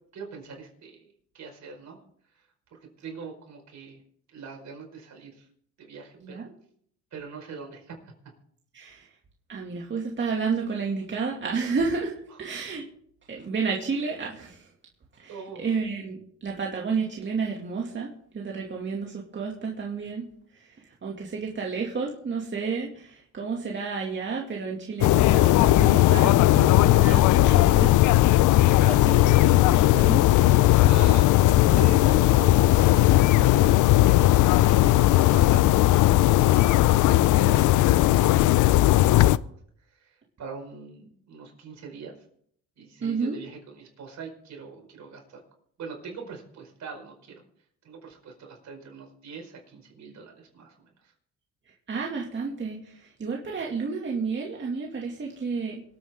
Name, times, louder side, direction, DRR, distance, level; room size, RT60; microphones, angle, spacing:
voice 1, 0.1-2.0 2.3-2.4 3.0-4.0 4.3-5.5 5.8-6.5 7.1-7.9 15.3-15.7 30.7-35.9 36.2-36.9 37.2-37.6 38.1-39.5 39.8-42.1 42.8-45.4 45.8-47.4 47.8-51.1, right 5 dB, 65° right, 2 dB, 5.1 m, -43 dB
voice 2, 8.7-9.1 9.5-12.9 13.3-14.7 15.1-20.3 20.5-28.0 28.8-30.5 43.0-43.4 51.9-55.8, right 5 dB, 40° right, -1 dB, 2.4 m, -31 dB
sound 1, 25.0-39.4, left 15 dB, 80° left, 0.5 m, -18 dB
25.5 x 8.9 x 3.7 m, 0.64 s
cardioid pair, 90°, 30 cm